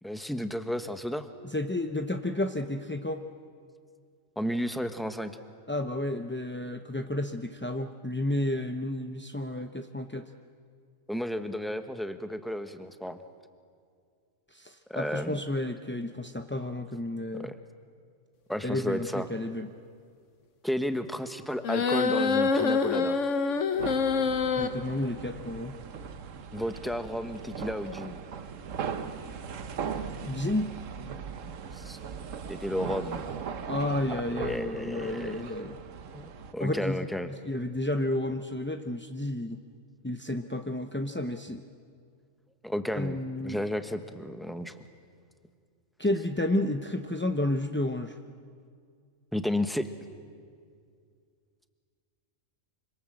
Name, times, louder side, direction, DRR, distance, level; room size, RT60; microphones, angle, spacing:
voice 1, 0.0-1.3 4.4-5.3 11.1-13.2 14.9-15.4 17.4-17.5 18.5-19.3 20.6-23.2 26.5-28.2 31.7-32.0 32.5-33.2 34.3-35.4 36.1-36.2 36.5-37.3 42.6-43.2 43.4-44.7 49.3-49.9, equal, ahead, 8 dB, 1.0 m, -32 dB
voice 2, 1.4-3.2 5.7-10.3 14.5-17.5 18.6-19.7 24.6-25.7 30.2-30.7 33.7-35.8 36.6-37.1 37.4-39.6 40.0-41.6 42.9-43.6 46.0-48.2, left 1 dB, 15° left, 6 dB, 0.4 m, -31 dB
sound 1, 21.6-24.7, left 5 dB, 65° left, 1.5 m, -25 dB
sound 2, 23.8-36.5, right 6 dB, 65° right, 1.3 m, -39 dB
26.0 x 25.5 x 7.7 m, 2.1 s
omnidirectional pair, 1.4 m